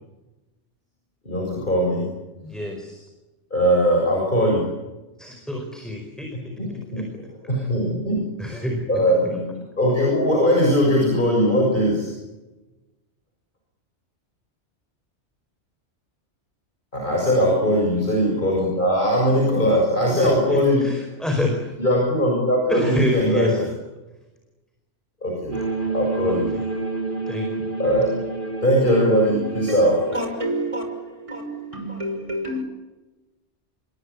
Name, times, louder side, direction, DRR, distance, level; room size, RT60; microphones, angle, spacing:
voice 1, 1.2-2.1 3.5-4.7 6.6-7.1 7.4-8.6 8.9-12.1 16.9-20.9 21.8-23.6 25.2-25.6 25.9-26.5 27.8-28.1 28.6-30.0, equal, 45° left, 7.4 m, -20 dB
voice 2, 2.4-3.0 5.2-6.3 8.4-8.9 9.2-9.4 20.2-21.7 22.7-23.7 26.2-26.4 27.3-27.4, left 1 dB, ahead, 5.0 m, -27 dB
sound 1, 25.5-30.6, right 3 dB, 45° right, 4.9 m, -29 dB
voice 3, 29.7-32.6, right 1 dB, 25° right, 6.0 m, -29 dB
29.0 x 23.0 x 8.7 m
omnidirectional pair, 1.2 m